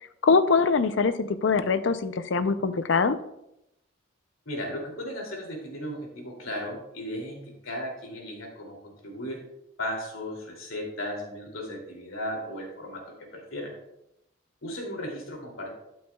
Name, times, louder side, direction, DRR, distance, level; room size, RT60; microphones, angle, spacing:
voice 1, 0.2-3.2, left 4 dB, 65° left, 12 dB, 0.5 m, -23 dB
voice 2, 4.5-9.4 9.8-13.7 14.6-15.7, equal, 90° left, 0 dB, 2.7 m, -36 dB
12.0 x 8.4 x 2.3 m, 0.84 s
head